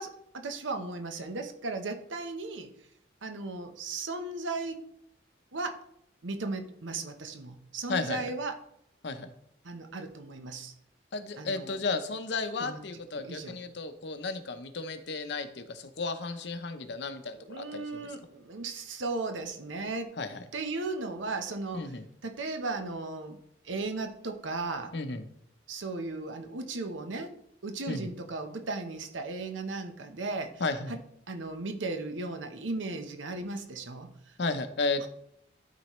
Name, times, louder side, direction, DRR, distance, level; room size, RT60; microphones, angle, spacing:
voice 1, 0.0-2.7 3.2-4.8 5.5-5.8 6.2-8.6 9.6-10.7 11.4-11.8 12.6-12.8 13.1-13.6 17.4-20.2 20.5-22.0 22.2-23.4 23.6-24.9 25.7-30.6 30.9-31.0 31.3-34.4 35.0-35.1, right 3 dB, 90° right, 6 dB, 1.0 m, -36 dB
voice 2, 7.9-8.2 9.0-9.3 11.1-18.1 20.2-20.4 21.7-22.1 24.9-25.2 27.9-28.1 30.6-31.0 34.4-35.1, left 3 dB, 65° left, 9 dB, 0.7 m, -33 dB
12.0 x 4.1 x 3.1 m, 0.72 s
head